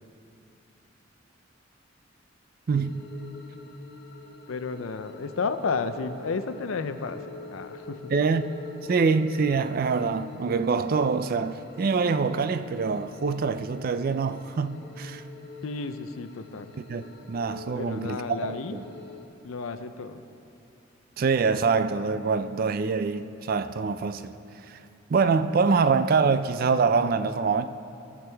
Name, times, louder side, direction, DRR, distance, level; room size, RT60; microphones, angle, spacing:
sound 1, 2.7-19.3, left 3 dB, 55° left, 0.8 m, -46 dB
voice 1, 2.7-3.0 8.1-8.5 8.9-15.2 16.9-17.0 17.3-18.8 21.2-24.3 24.7-24.8 25.1-27.6, right 5 dB, 45° right, 0.4 m, -25 dB
voice 2, 4.5-8.1 15.6-16.7 17.8-18.8 19.4-20.2, left 4 dB, 85° left, 0.5 m, -32 dB
18.0 x 6.1 x 3.4 m
head